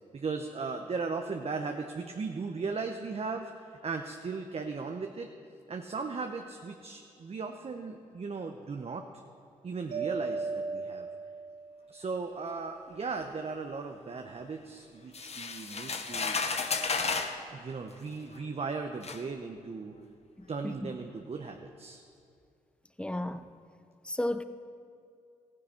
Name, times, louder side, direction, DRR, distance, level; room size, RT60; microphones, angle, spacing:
voice 1, 0.1-5.3 5.7-9.0 9.6-11.1 11.9-16.4 16.9-19.9 20.5-22.0, right 4 dB, 40° right, 0.8 m, -37 dB
Mallet percussion, 9.9-12.0, right 4 dB, 65° right, 2.5 m, -36 dB
sound 1, 15.1-17.4 18.3-18.4 19.0-19.2, left 4 dB, 45° left, 1.0 m, -32 dB
voice 2, 20.4-20.9 23.0-23.5 24.0-24.4, left 1 dB, 5° left, 0.7 m, -34 dB
15.0 x 9.6 x 4.4 m
hypercardioid pair, 45°, 15 cm